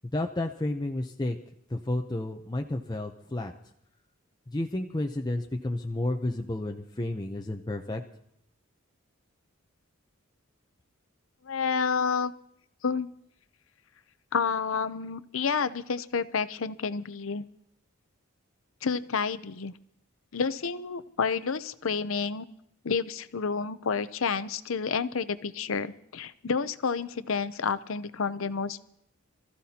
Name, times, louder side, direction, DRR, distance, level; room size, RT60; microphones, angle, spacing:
voice 1, 0.1-1.4 1.7-3.5 4.5-8.0, left 1 dB, 20° left, 2 dB, 0.7 m, -31 dB
voice 2, 11.4-12.3 12.8-13.1 14.3-17.4 18.8-19.7 20.3-22.5 22.8-28.8, left 5 dB, 70° left, 14 dB, 0.7 m, -29 dB
27.5 x 14.5 x 2.9 m, 0.73 s
head